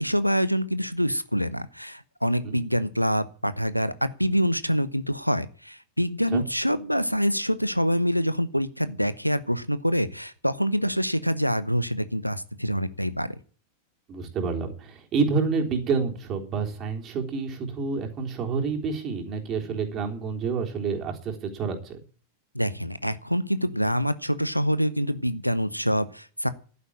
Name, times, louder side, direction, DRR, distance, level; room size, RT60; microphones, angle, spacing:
voice 1, 0.0-13.4 22.5-26.5, equal, 90° left, 16 dB, 0.8 m, -26 dB
voice 2, 14.1-22.0, right 5 dB, 30° right, 2 dB, 3.5 m, -28 dB
11.5 x 9.6 x 8.7 m, 0.41 s
figure-of-eight pair, 90°, 0 cm